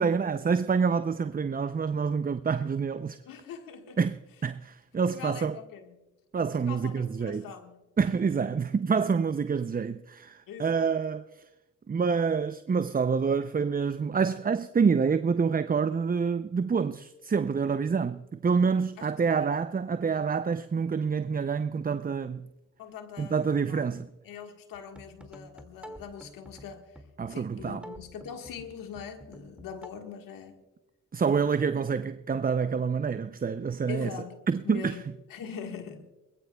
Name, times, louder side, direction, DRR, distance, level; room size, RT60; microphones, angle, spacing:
voice 1, 0.0-3.2 4.0-4.1 4.4-5.6 6.3-7.4 8.0-11.4 11.9-22.5 23.2-24.1 27.2-27.8 31.1-34.1 34.5-35.0, right 5 dB, 25° right, 0.5 m, -27 dB
voice 2, 3.2-4.0 5.1-6.0 6.6-7.9 8.2-8.3 10.5-11.1 19.0-19.5 22.8-30.6 33.9-36.0, left 7 dB, 85° left, 1.6 m, -43 dB
sound 1, 24.7-29.9, equal, 5° right, 2.2 m, -49 dB
22.5 x 20.0 x 2.3 m
supercardioid pair, 45°, 33 cm